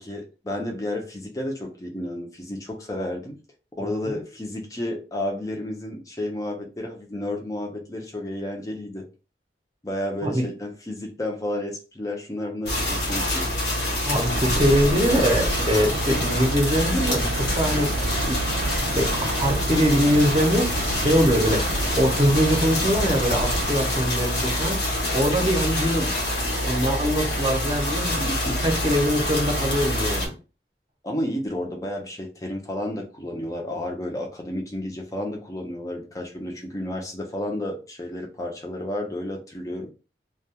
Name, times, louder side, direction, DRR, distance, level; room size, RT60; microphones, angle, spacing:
voice 1, 0.0-3.4 3.8-9.1 9.8-13.5 28.3-28.6 31.0-39.9, left 1 dB, 20° left, 0 dB, 0.5 m, -31 dB
voice 2, 3.8-4.2 10.2-10.5 14.0-18.4 18.8-26.1 26.6-30.3, equal, 25° right, 1 dB, 0.6 m, -23 dB
sound 1, 12.7-30.3, left 1 dB, 80° left, 1.0 m, -26 dB
sound 2, 14.2-23.7, right 3 dB, 90° right, 0.4 m, -31 dB
2.3 x 2.2 x 2.8 m, 0.33 s
head